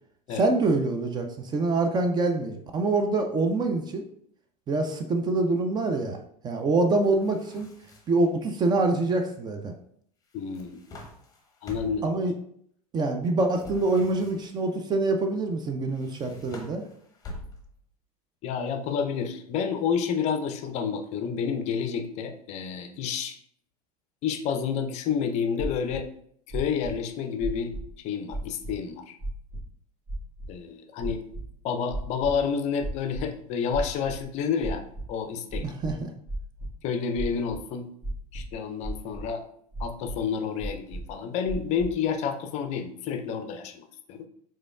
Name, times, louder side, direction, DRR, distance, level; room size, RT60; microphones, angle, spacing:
voice 1, 0.3-4.1 4.7-6.2 6.4-7.7 8.1-9.7 12.0-12.3 12.9-16.8 35.6-36.1, right 2 dB, 20° right, 5 dB, 0.5 m, -25 dB
sound 1, 7.0-8.3 10.3-12.2 13.5-14.7 15.9-17.9, left 1 dB, 20° left, 0.8 m, -45 dB
voice 2, 10.3-10.8 11.6-12.1 18.4-23.4 24.2-26.1 26.5-27.7 28.0-29.2 30.5-31.2 31.6-35.7 36.8-37.9 38.3-39.4 39.8-44.3, left 6 dB, 35° left, 7 dB, 0.5 m, -29 dB
sound 2, 25.6-26.0 26.5-26.9 27.4-27.9 28.3-28.7 29.2-29.6 30.1-30.5 31.0-31.4 31.9-32.4 32.8-33.3 33.7-34.3 34.6-35.1 35.5-36.7 37.2-37.6 38.0-38.5 38.8-39.3 39.7-40.2 40.6-41.1 41.5-41.9, right 1 dB, 50° right, 1.6 m, -34 dB
5.0 x 3.7 x 2.3 m, 0.66 s
figure-of-eight pair, 80°, 20 cm